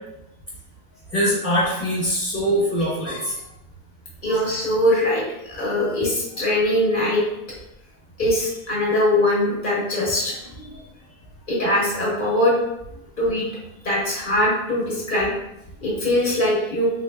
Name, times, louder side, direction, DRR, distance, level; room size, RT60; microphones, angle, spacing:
voice 1, 1.1-3.4 4.3-4.4, equal, 10° left, -8 dB, 0.8 m, -23 dB
voice 2, 4.2-7.2 8.2-10.3 11.5-12.6 13.2-13.5 13.8-15.3 15.8-16.9, left 1 dB, 40° left, -5 dB, 1.0 m, -21 dB
4.2 x 3.2 x 2.2 m, 0.86 s
omnidirectional pair, 1.5 m